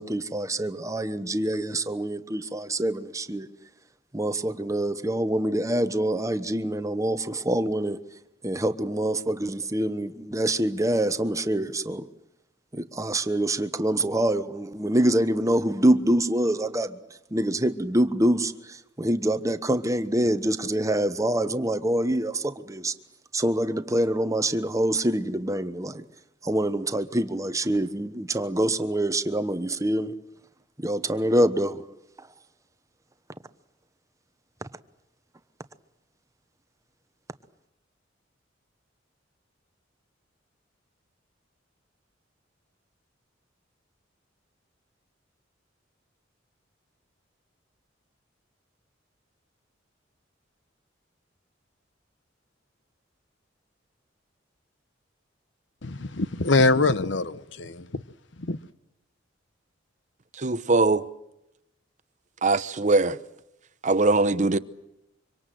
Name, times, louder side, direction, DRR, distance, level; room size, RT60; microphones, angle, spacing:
voice 1, 0.0-3.5 4.1-8.0 8.4-12.1 12.7-17.0 17.3-22.9 23.3-26.0 26.4-30.2 30.8-32.0 34.6-34.7, right 1 dB, 15° right, 1.1 m, -25 dB
voice 2, 55.8-58.0 58.4-58.6, left 3 dB, 65° left, 1.0 m, -24 dB
voice 3, 60.4-61.1 62.4-63.2 63.8-64.6, right 3 dB, 40° right, 0.9 m, -21 dB
25.0 x 25.0 x 7.8 m
head